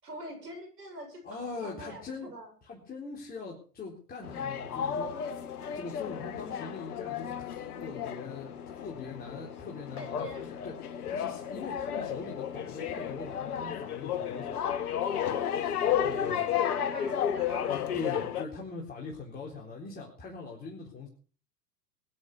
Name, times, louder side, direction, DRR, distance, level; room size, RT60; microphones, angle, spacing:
voice 1, 0.0-2.5 9.9-10.5 11.7-12.1 16.1-18.0, right 1 dB, 80° right, 5 dB, 7.7 m, -45 dB
voice 2, 1.2-2.3 2.7-5.4 5.7-10.3 10.6-10.7 11.1-14.6 16.0-16.6 17.7-21.1, left 4 dB, 20° left, -3 dB, 4.0 m, -42 dB
sound 1, 4.2-18.4, left 9 dB, 65° left, 1.6 m, -33 dB
22.0 x 10.0 x 4.8 m, 0.40 s
hypercardioid pair, 105°, 47 cm